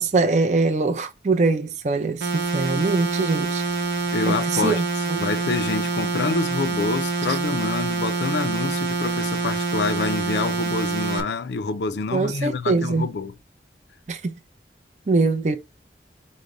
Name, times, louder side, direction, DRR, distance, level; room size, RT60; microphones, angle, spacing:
voice 1, 0.0-3.6 4.3-5.2 7.3-7.4 12.1-13.1 14.1-14.4 15.1-15.6, right 3 dB, 40° right, 0.4 m, -23 dB
sound 1, 2.2-11.2, right 3 dB, 85° right, 0.8 m, -26 dB
voice 2, 4.1-4.8 5.2-13.3, left 4 dB, 75° left, 0.4 m, -27 dB
5.2 x 2.1 x 4.8 m
head